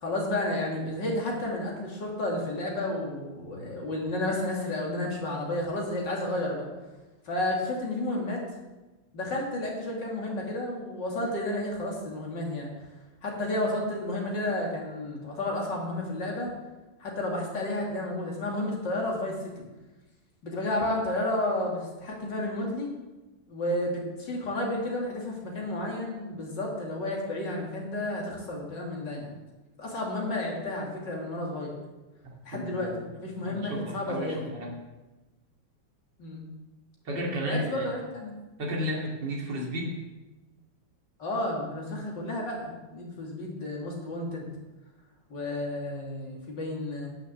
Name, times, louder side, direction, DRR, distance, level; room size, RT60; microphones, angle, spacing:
voice 1, 0.0-6.7 7.2-8.4 9.1-12.7 13.2-16.5 17.0-19.3 20.4-22.9 23.5-29.3 29.8-31.7 32.4-34.4 36.2-36.4 37.4-38.3 41.2-44.5 45.3-47.1, left 1 dB, 85° left, -2 dB, 3.3 m, -31 dB
voice 2, 32.5-32.9 33.4-34.8 37.0-37.9 38.6-40.0, equal, 80° right, -2 dB, 3.2 m, -33 dB
11.0 x 6.8 x 7.8 m, 1.1 s
omnidirectional pair, 1.9 m